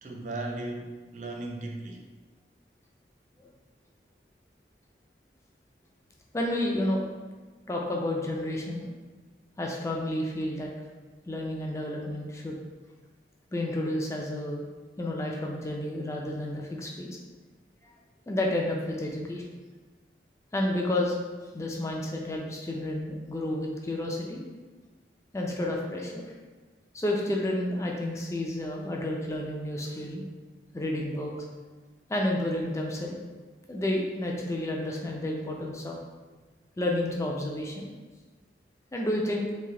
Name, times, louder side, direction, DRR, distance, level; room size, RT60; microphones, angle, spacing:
voice 1, 0.0-2.0, right 2 dB, 40° right, 1 dB, 0.5 m, -36 dB
voice 2, 6.3-7.0 7.7-8.9 9.6-10.7 11.3-12.6 13.5-14.7 15.0-17.2 18.3-19.5 20.5-21.2 21.5-24.4 25.3-26.3 26.9-30.2 30.7-31.5 32.1-33.2 33.7-36.0 36.8-37.9 38.9-39.5, left 1 dB, 15° left, -1 dB, 0.4 m, -30 dB
3.2 x 2.6 x 3.6 m, 1.3 s
head